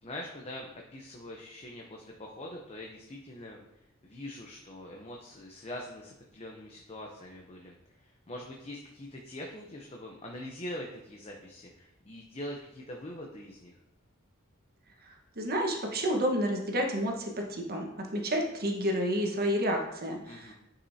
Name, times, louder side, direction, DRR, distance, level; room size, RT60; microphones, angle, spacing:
voice 1, 0.0-3.6 4.0-13.7 20.2-20.5, left 1 dB, 30° left, 1 dB, 0.7 m, -43 dB
voice 2, 15.4-20.5, equal, 50° right, 1 dB, 1.3 m, -30 dB
10.0 x 5.5 x 2.8 m, 0.87 s
head